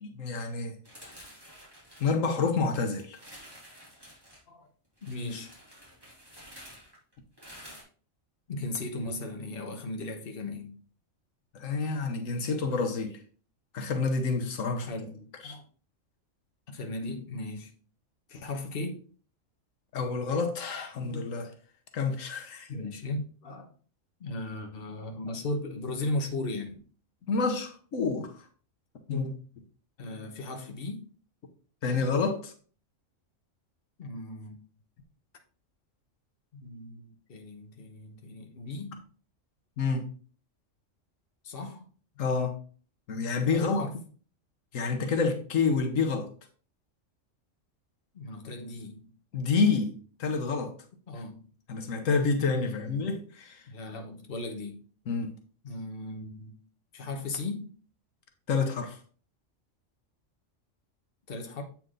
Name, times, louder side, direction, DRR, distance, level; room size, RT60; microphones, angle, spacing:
voice 1, 0.0-0.8 2.0-3.2 11.5-13.2 13.7-14.9 15.4-15.6 19.9-21.5 21.9-22.7 27.3-28.3 29.1-29.4 31.8-32.5 39.8-40.0 42.2-42.5 43.1-43.9 44.7-46.3 49.3-50.7 51.7-53.6 55.1-55.3 58.5-59.0, left 4 dB, 85° left, 1.4 m, -28 dB
sound 1, 0.8-2.6 3.0-4.4 5.0-7.8, equal, 20° right, 3.1 m, -50 dB
voice 2, 5.0-5.5 8.5-10.8 14.8-15.7 16.7-17.7 18.3-19.0 21.0-21.3 22.7-23.7 24.2-26.8 30.0-31.0 34.0-34.6 36.5-39.0 41.4-41.9 43.5-43.9 48.1-49.1 51.1-51.5 52.5-53.2 53.7-54.8 55.6-56.6 56.9-57.7 61.3-61.6, left 2 dB, 50° left, 1.3 m, -37 dB
8.0 x 4.4 x 3.8 m
omnidirectional pair, 1.3 m